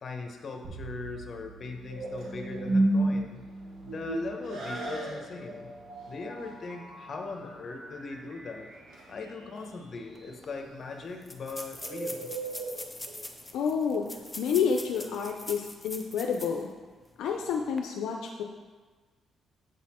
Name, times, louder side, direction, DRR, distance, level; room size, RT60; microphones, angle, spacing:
voice 1, 0.0-3.4 3.8-5.7 6.1-8.7 9.1-12.3, left 4 dB, 45° left, 3 dB, 0.9 m, -40 dB
sound 1, 0.6-9.7, right 1 dB, 60° right, 1.2 m, -34 dB
Bird, 1.9-14.9, right 2 dB, 80° right, 1.7 m, -42 dB
sound 2, 10.2-10.3 10.4-10.5 11.2-16.7 17.1-17.2 17.6-17.8, left 1 dB, 10° left, 0.7 m, -42 dB
voice 2, 13.5-14.1 14.4-16.7 17.2-18.4, left 6 dB, 85° left, 2 dB, 0.5 m, -29 dB
8.0 x 4.1 x 4.2 m, 1.4 s
cardioid pair, 90°, 0 cm